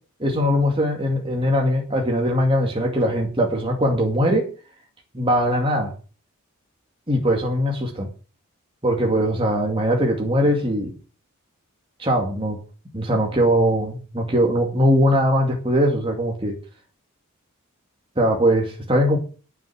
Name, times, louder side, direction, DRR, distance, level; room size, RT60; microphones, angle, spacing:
voice 1, 0.2-4.5 5.1-5.9 7.1-8.1 8.8-10.9 12.0-12.6 12.9-16.6 18.2-19.2, equal, 25° right, 0 dB, 2.5 m, -20 dB
9.3 x 7.2 x 7.6 m, 0.37 s
head